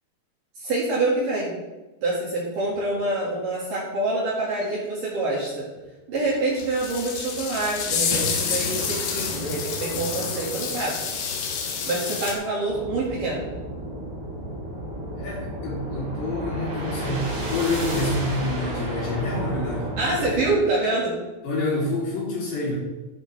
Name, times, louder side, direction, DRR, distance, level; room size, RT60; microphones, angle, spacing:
voice 1, 0.6-1.5 2.0-5.7 6.1-11.0 11.9-13.5 20.0-21.1, right 2 dB, 55° right, -5 dB, 2.9 m, -26 dB
sound 1, 6.2-6.3 6.6-12.3, left 5 dB, 85° left, 4.1 m, -28 dB
sound 2, 12.7-20.5, right 1 dB, 40° right, 4.6 m, -32 dB
voice 2, 15.2-20.4 21.4-22.8, left 2 dB, 65° left, -5 dB, 5.1 m, -28 dB
12.0 x 10.5 x 3.3 m, 1.1 s
omnidirectional pair, 5.6 m